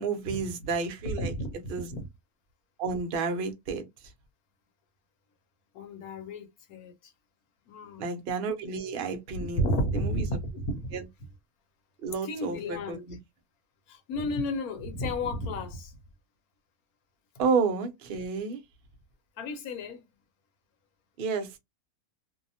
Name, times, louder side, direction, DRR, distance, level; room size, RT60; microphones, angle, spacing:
voice 1, 0.0-1.4 1.7-1.9 2.8-3.8 8.0-9.6 9.9-10.3 10.9-11.0 12.0-13.2 17.4-18.6 21.2-21.6, right 4 dB, 60° right, 0.6 m, -30 dB
voice 2, 1.0-1.5 1.9-2.1 5.7-7.1 7.7-8.0 9.4-10.9 12.2-13.0 13.9-15.9 19.4-20.0, equal, 75° left, 1.2 m, -32 dB
2.7 x 2.0 x 2.6 m
omnidirectional pair, 1.6 m